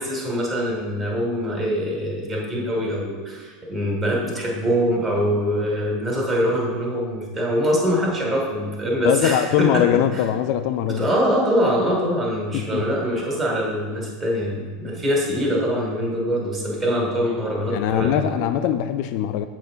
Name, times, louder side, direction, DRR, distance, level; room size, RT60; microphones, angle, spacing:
voice 1, 0.0-9.9 10.1-10.2 10.9-18.3, equal, 20° right, -2 dB, 2.8 m, -23 dB
voice 2, 9.0-11.1 12.5-12.8 17.7-19.5, left 10 dB, 55° left, 10 dB, 0.4 m, -21 dB
7.7 x 7.4 x 4.0 m, 1.4 s
hypercardioid pair, 80°, 0 cm